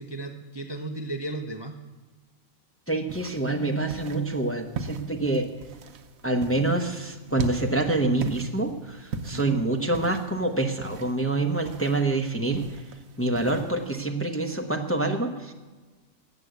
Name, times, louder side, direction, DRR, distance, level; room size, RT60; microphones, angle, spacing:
voice 1, 0.0-1.8 9.3-9.7, right 2 dB, 25° right, 4 dB, 0.7 m, -35 dB
voice 2, 2.9-5.5 6.2-12.8 13.2-15.5, right 2 dB, 10° left, 3 dB, 0.8 m, -26 dB
sound 1, 3.1-14.0, right 4 dB, 70° right, 1.3 m, -40 dB
13.0 x 8.4 x 8.0 m, 1.3 s
omnidirectional pair, 1.5 m